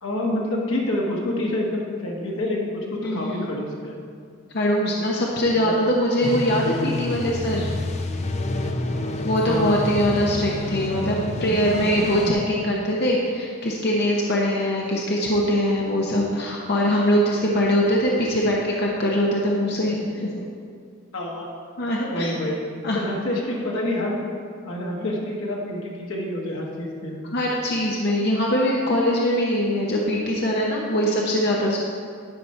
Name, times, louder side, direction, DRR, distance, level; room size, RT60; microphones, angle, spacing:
voice 1, 0.0-4.0 5.5-5.8 9.4-9.8 21.1-21.5 22.1-22.6 22.9-24.2 24.6-27.3, left 1 dB, 80° left, -2 dB, 1.3 m, -27 dB
voice 2, 3.0-3.5 4.5-7.7 9.2-20.4 21.8-22.3 22.8-23.2 25.0-25.2 27.3-31.8, equal, 55° left, -3 dB, 0.9 m, -22 dB
sound 1, 6.2-12.3, left 1 dB, 35° left, 0.5 m, -28 dB
11.0 x 4.3 x 5.4 m, 2.2 s
head